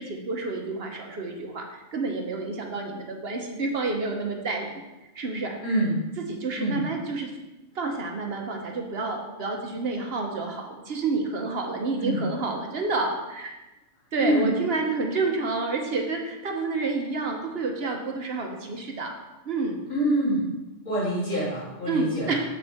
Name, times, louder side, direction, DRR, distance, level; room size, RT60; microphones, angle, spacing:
voice 1, 0.0-4.8 5.2-5.8 6.2-7.3 7.7-13.5 14.1-19.1 19.4-19.8 21.9-22.4, right 3 dB, 50° right, 2 dB, 1.1 m, -29 dB
voice 2, 5.6-6.0 6.6-6.9 12.0-12.2 14.2-14.5 19.9-20.5 20.9-22.4, right 1 dB, 80° left, -8 dB, 3.5 m, -25 dB
7.3 x 6.7 x 3.5 m, 1.0 s
omnidirectional pair, 1.4 m